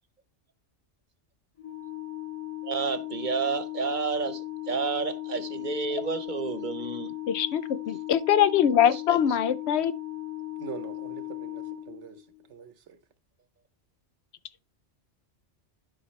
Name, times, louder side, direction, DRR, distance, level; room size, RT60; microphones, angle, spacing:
Organ, 1.6-12.4, left 14 dB, 30° left, 1.6 m, -37 dB
voice 1, 2.6-7.1 8.9-9.2, right 5 dB, 45° right, 1.0 m, -30 dB
voice 2, 7.3-9.9, left 9 dB, 70° left, 0.8 m, -23 dB
voice 3, 10.6-12.2 12.5-12.7, right 8 dB, 80° right, 1.2 m, -42 dB
11.5 x 5.2 x 3.2 m
omnidirectional pair, 1.2 m